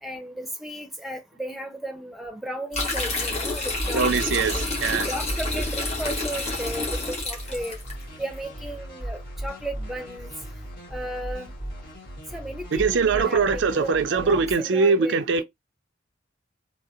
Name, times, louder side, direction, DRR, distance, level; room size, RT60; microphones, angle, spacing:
voice 1, 0.0-4.1 4.5-4.6 5.0-7.8 8.2-10.3 10.9-11.5 12.3-15.4, right 1 dB, ahead, 0.6 m, -35 dB
sound 1, 2.7-7.9, left 2 dB, 35° left, 1.3 m, -28 dB
sound 2, 3.6-14.6, right 1 dB, 55° left, 1.9 m, -38 dB
voice 2, 3.9-5.1 12.7-15.4, right 5 dB, 75° right, 0.4 m, -22 dB
3.6 x 2.0 x 2.7 m
head